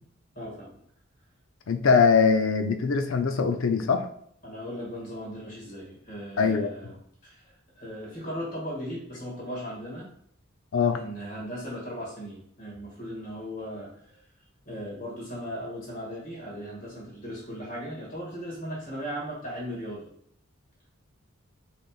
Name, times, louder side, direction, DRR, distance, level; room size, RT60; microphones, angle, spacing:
voice 1, 0.4-0.8 4.4-6.9 7.2-7.4 7.8-10.1 10.9-14.2 14.7-20.1, equal, 40° left, -4 dB, 2.0 m, -37 dB
voice 2, 1.7-4.1 6.4-6.9 10.7-11.0, left 5 dB, 70° left, 7 dB, 0.5 m, -22 dB
6.5 x 3.4 x 2.4 m, 0.67 s
head